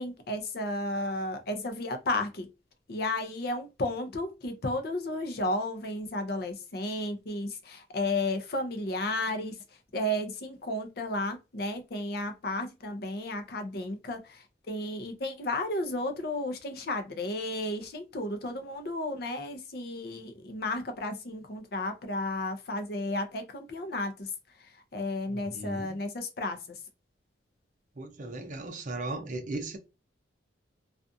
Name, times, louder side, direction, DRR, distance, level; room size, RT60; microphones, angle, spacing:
voice 1, 0.0-2.5 2.9-24.3 24.6-26.8, left 1 dB, 55° left, 0.5 m, -33 dB
voice 2, 25.3-26.0 28.0-29.8, right 2 dB, 40° right, 0.5 m, -37 dB
2.4 x 2.4 x 2.6 m
head